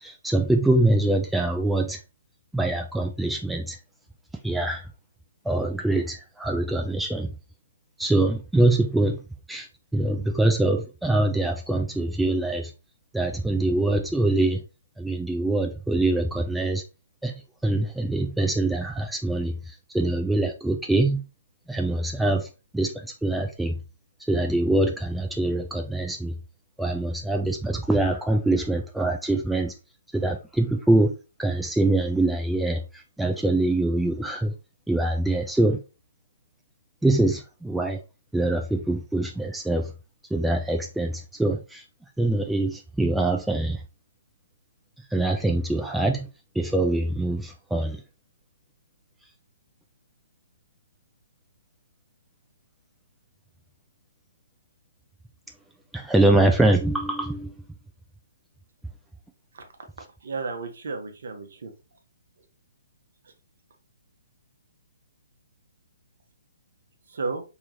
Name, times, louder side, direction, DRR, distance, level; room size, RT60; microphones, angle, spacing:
voice 1, 0.0-2.0 2.5-3.8 4.4-4.9 5.5-7.3 8.0-9.2 9.5-12.7 13.1-14.6 15.0-16.8 17.2-17.3 17.6-21.2 21.7-22.5 22.7-23.7 24.3-26.3 26.8-29.7 30.1-31.1 31.4-34.5 34.9-35.8 37.0-38.0 38.3-39.9 40.3-41.8 42.2-43.8 45.1-46.3 46.6-48.0 55.9-57.6, right 2 dB, 5° right, 0.4 m, -24 dB
voice 2, 60.2-61.7 63.2-63.3 67.1-67.4, right 4 dB, 60° right, 0.9 m, -33 dB
4.6 x 2.9 x 2.8 m
figure-of-eight pair, 130°, 0 cm